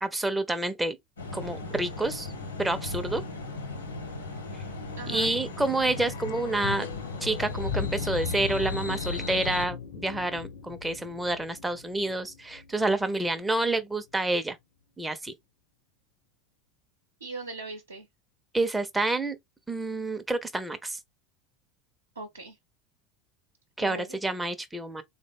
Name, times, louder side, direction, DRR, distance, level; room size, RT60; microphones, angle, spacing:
voice 1, 0.0-1.0 1.3-2.3 2.6-3.2 5.1-6.9 7.2-14.6 15.0-15.3 18.5-19.4 19.7-21.0 23.8-25.0, right 2 dB, 10° right, 0.4 m, -28 dB
sound 1, 1.2-9.7, left 2 dB, 85° left, 0.8 m, -37 dB
sound 2, 4.9-13.1 13.3-13.4, left 6 dB, 65° left, 0.4 m, -37 dB
voice 2, 5.0-5.3 17.2-18.1 22.1-22.6 23.8-24.2, right 3 dB, 85° right, 0.6 m, -39 dB
3.5 x 2.0 x 3.5 m
figure-of-eight pair, 80°, 0 cm